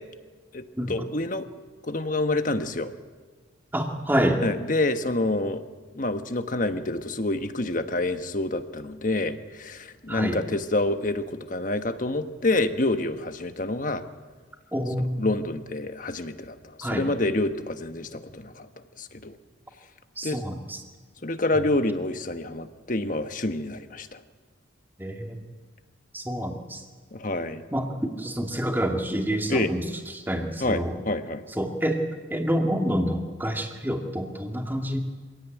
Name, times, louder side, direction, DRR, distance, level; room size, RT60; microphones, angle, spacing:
voice 1, 0.5-1.5 1.9-2.9 4.4-5.6 5.9-14.0 15.0-18.7 19.0-19.4 20.2-20.4 21.2-24.2 27.1-27.6 29.5-29.7 30.6-31.4, left 2 dB, 40° left, 9 dB, 1.3 m, -27 dB
voice 2, 3.7-4.4 10.1-10.4 14.7-15.3 16.8-17.1 20.2-20.8 25.0-25.4 26.1-26.8 27.7-29.8 30.1-31.0 31.6-32.0 32.3-35.0, equal, 10° right, 3 dB, 2.3 m, -27 dB
25.5 x 17.0 x 9.3 m, 1.4 s
head